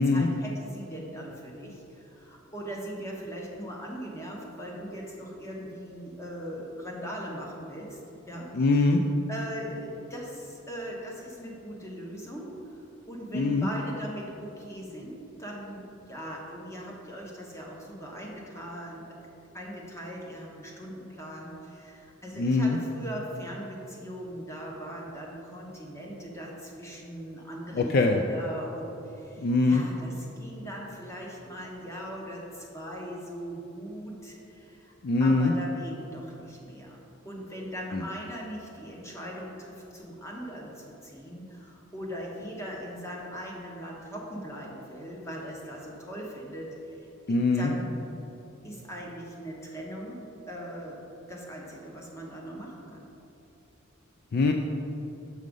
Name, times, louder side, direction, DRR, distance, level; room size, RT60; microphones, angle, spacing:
voice 1, 0.0-8.0 8.3-8.5 9.3-12.8 13.1-19.0 19.5-34.9 35.2-37.0 37.2-48.1 48.6-51.0 51.3-53.0, equal, 15° left, -2 dB, 1.1 m, -40 dB
voice 2, 8.5-9.0 13.3-13.7 22.3-22.8 27.7-28.2 29.4-29.8 35.0-35.5 37.9-38.0 47.3-47.7 54.3-54.5, left 3 dB, 45° left, 3 dB, 0.4 m, -23 dB
6.4 x 6.2 x 5.3 m, 2.9 s
head